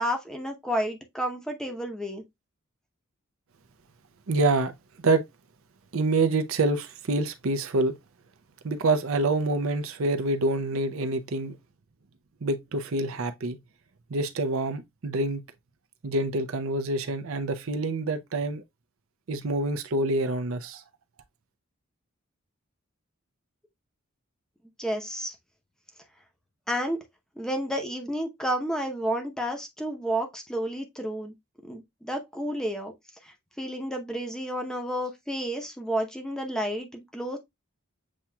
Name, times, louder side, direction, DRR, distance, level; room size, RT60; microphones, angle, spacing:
voice 1, 0.0-2.2 24.8-25.3 26.7-27.0 27.4-31.3 31.7-32.9 33.2-37.4, equal, 5° left, 0.7 m, -31 dB
voice 2, 4.3-4.7 5.0-5.2 5.9-8.0 8.6-11.5 12.4-13.6 14.1-15.4 16.0-18.6 19.3-20.8, right 2 dB, 75° right, 0.6 m, -26 dB
7.3 x 2.9 x 2.2 m
head